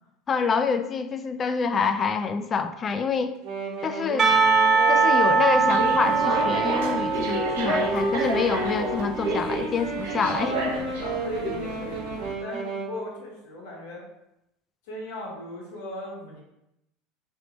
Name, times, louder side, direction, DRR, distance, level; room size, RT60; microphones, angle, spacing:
voice 1, 0.3-3.3 3.8-4.3 4.9-10.5, left 5 dB, 35° left, 9 dB, 0.3 m, -26 dB
Wind instrument woodwind instrument, 3.4-12.9, right 1 dB, 60° right, 1.2 m, -32 dB
Percussion / Church bell, 4.2-9.2, right 4 dB, 35° right, 1.0 m, -23 dB
sound 1, 5.5-12.3, right 2 dB, 85° right, 0.8 m, -31 dB
voice 2, 10.2-14.0 14.8-16.4, equal, 80° left, -4 dB, 1.3 m, -36 dB
3.1 x 2.9 x 4.1 m, 0.85 s
hypercardioid pair, 90°, 0 cm